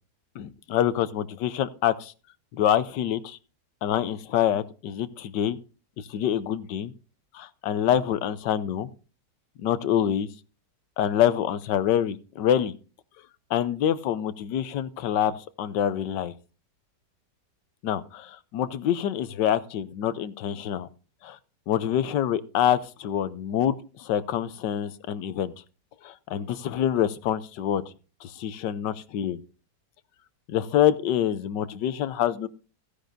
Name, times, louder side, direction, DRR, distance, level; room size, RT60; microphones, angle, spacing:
voice 1, 0.3-2.1 2.5-3.4 3.8-5.6 6.0-6.9 7.3-8.9 9.6-10.3 11.0-12.7 13.5-16.3 17.8-20.9 21.2-21.4 21.7-25.5 26.0-27.8 28.2-29.4 30.5-32.5, left 10 dB, 85° left, 14 dB, 1.4 m, -26 dB
15.5 x 10.0 x 2.6 m, 0.35 s
omnidirectional pair, 1.9 m